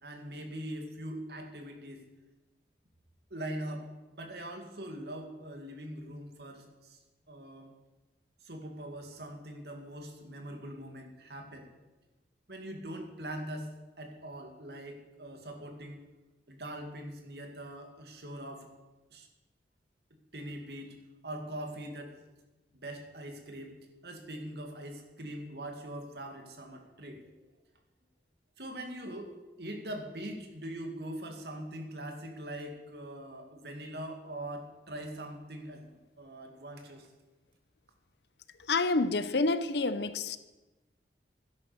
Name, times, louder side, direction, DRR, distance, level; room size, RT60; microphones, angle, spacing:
voice 1, 0.0-2.1 3.3-3.8 4.1-7.0 7.3-7.7 8.4-11.7 12.5-13.7 14.0-16.0 16.5-18.7 19.1-19.3 20.3-21.0 21.2-22.1 22.8-23.8 24.0-27.3 28.6-37.1, right 1 dB, 70° right, 2.3 m, -42 dB
voice 2, 38.7-40.4, left 3 dB, 75° left, 0.8 m, -28 dB
12.5 x 10.5 x 6.8 m
head